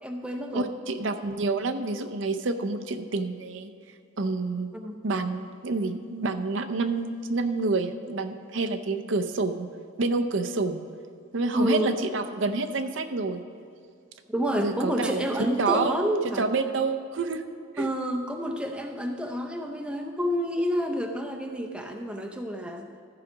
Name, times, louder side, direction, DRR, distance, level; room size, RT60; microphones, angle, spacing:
voice 1, 0.0-0.7 4.7-5.0 11.5-12.0 14.3-16.5 17.8-22.9, equal, 5° right, 3 dB, 0.6 m, -29 dB
voice 2, 0.5-3.7 4.2-4.7 5.0-9.7 10.0-10.8 11.3-13.4 14.6-15.2 15.6-16.0 16.4-17.4 17.7-17.9, right 3 dB, 70° right, 6 dB, 0.6 m, -28 dB
14.0 x 4.9 x 6.1 m, 2.3 s
head